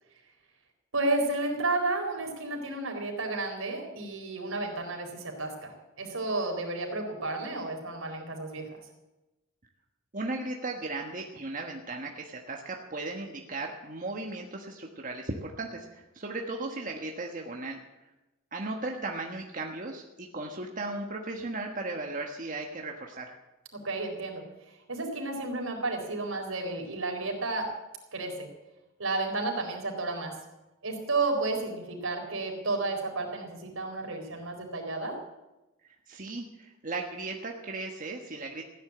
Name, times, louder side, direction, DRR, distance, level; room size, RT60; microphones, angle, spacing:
voice 1, 0.9-8.7 23.8-24.4 24.9-27.7 28.1-28.5 29.0-30.3 30.8-35.2, right 2 dB, 85° right, 2 dB, 4.2 m, -32 dB
voice 2, 10.1-17.8 18.5-23.4 35.8-38.6, right 2 dB, 40° right, 1 dB, 1.4 m, -36 dB
15.5 x 10.0 x 8.6 m, 1.0 s
head